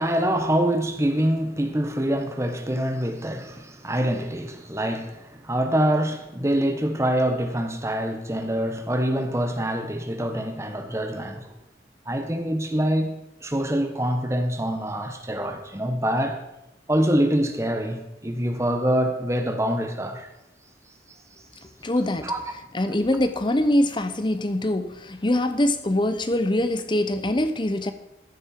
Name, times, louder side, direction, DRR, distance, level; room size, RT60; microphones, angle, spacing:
voice 1, 0.0-11.5 12.0-16.4 16.9-20.3 22.2-22.4, right 1 dB, 15° right, 1.2 m, -25 dB
voice 2, 21.8-22.3 22.7-27.9, left 1 dB, 25° left, 0.8 m, -23 dB
14.5 x 8.8 x 4.5 m
head